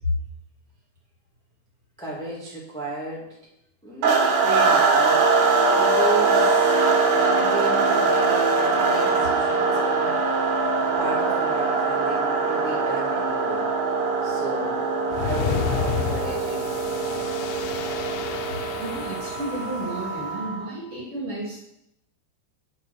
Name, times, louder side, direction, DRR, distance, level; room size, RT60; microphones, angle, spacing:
voice 1, 2.0-3.2 3.8-5.2 5.7-10.2 10.8-13.6 14.2-14.9 15.2-18.0, right 2 dB, ahead, -5 dB, 1.7 m, -34 dB
sound 1, 4.0-20.7, right 4 dB, 80° right, 3.8 m, -22 dB
sound 2, 15.1-20.0, left 9 dB, 90° left, 2.9 m, -31 dB
voice 2, 18.8-21.6, equal, 40° right, -4 dB, 3.2 m, -31 dB
9.6 x 5.8 x 6.3 m, 0.80 s
omnidirectional pair, 4.8 m